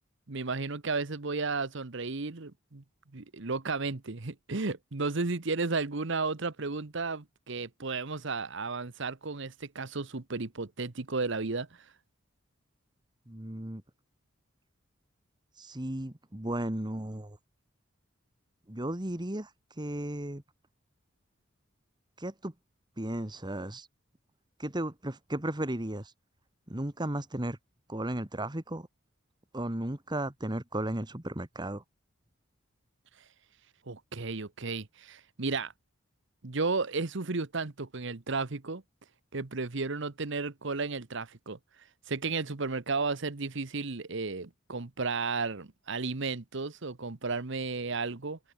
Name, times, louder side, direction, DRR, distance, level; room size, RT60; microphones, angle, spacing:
voice 1, 0.3-2.8 3.1-11.9 33.9-35.7 36.4-38.8 39.3-41.6 42.1-48.4, right 4 dB, 65° right, 1.1 m, -33 dB
voice 2, 13.3-13.8 15.6-17.4 18.7-19.5 19.8-20.4 22.2-22.5 23.0-23.9 24.6-26.1 26.7-27.6 27.9-28.9 29.5-31.8, right 1 dB, 20° right, 1.6 m, -35 dB
open air
head